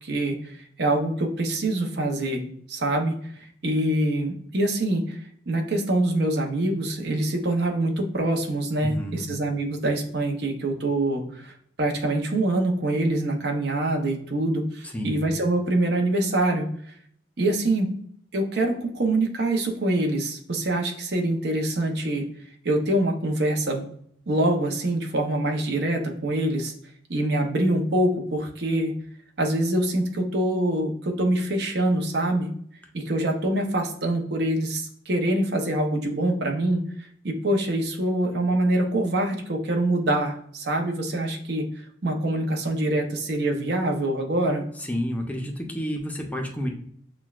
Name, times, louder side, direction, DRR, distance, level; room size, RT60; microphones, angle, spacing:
voice 1, 0.0-3.1 3.4-16.7 17.4-17.9 18.3-22.2 22.6-23.9 24.3-26.7 27.1-28.9 29.4-32.5 32.9-41.7 42.0-44.6, right 1 dB, 60° right, 2 dB, 0.8 m, -25 dB
voice 2, 8.8-9.3 14.9-15.2 44.8-46.7, equal, 10° left, 1 dB, 0.6 m, -30 dB
6.0 x 2.2 x 2.4 m, 0.63 s
head